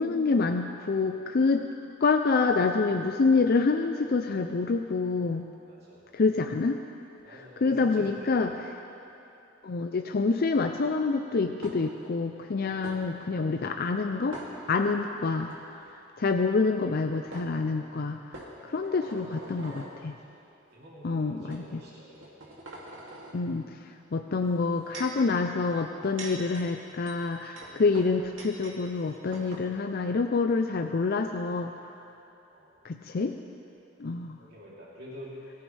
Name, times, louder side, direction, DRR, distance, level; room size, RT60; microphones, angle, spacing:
voice 1, 0.0-1.6 2.0-5.5 6.1-6.8 7.3-8.5 9.6-14.4 14.7-15.5 16.2-18.2 18.6-20.1 21.0-21.8 23.3-23.7 24.1-31.7 32.8-33.3 34.0-34.4, left 4 dB, 55° left, 5 dB, 0.5 m, -27 dB
voice 2, 5.7-6.0 7.2-8.5 18.8-19.0 20.3-20.4 20.7-22.3 32.5-32.7 34.4-35.3, equal, 55° right, -7 dB, 3.1 m, -48 dB
sound 1, 11.6-12.1 12.8-13.0 14.3-15.0 15.4-15.6 16.9-17.0 17.3-17.5 18.3-19.9 20.7-20.9 21.5-21.6 22.2-23.3 24.4-25.2 25.9-28.8 29.0-29.1 29.3-29.7, right 2 dB, 85° right, 2.5 m, -44 dB
22.0 x 14.5 x 3.4 m, 2.8 s
head